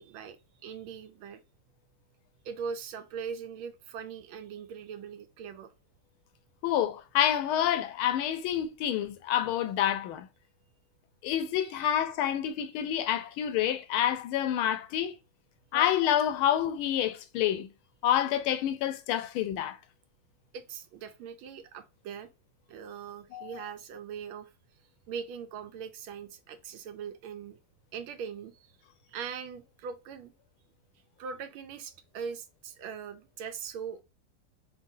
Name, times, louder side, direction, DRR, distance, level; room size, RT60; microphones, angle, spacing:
voice 1, 0.0-1.4 2.4-5.7 11.6-11.9 20.5-22.3 22.7-24.5 25.1-27.6 27.9-28.7 29.1-30.3 31.2-34.0, right 6 dB, 75° right, 1.4 m, -41 dB
voice 2, 6.6-10.2 11.2-15.1 15.7-17.7 18.0-19.8 23.3-23.6, left 10 dB, 75° left, 1.4 m, -28 dB
4.6 x 3.7 x 2.6 m
omnidirectional pair, 2.4 m